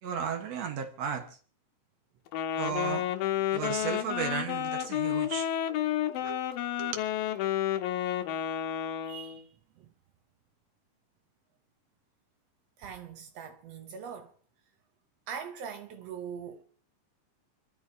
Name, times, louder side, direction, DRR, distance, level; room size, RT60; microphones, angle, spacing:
voice 1, 0.0-1.4 2.6-3.1 3.5-5.5 6.2-6.4 6.8-7.0, right 7 dB, 60° right, 2.1 m, -34 dB
Wind instrument woodwind instrument, 2.3-9.4, left 11 dB, 85° left, 2.6 m, -31 dB
voice 2, 9.0-9.5 9.8-9.9 12.8-14.3 15.3-16.6, right 7 dB, 80° right, 1.4 m, -42 dB
29.0 x 11.5 x 2.8 m
omnidirectional pair, 4.1 m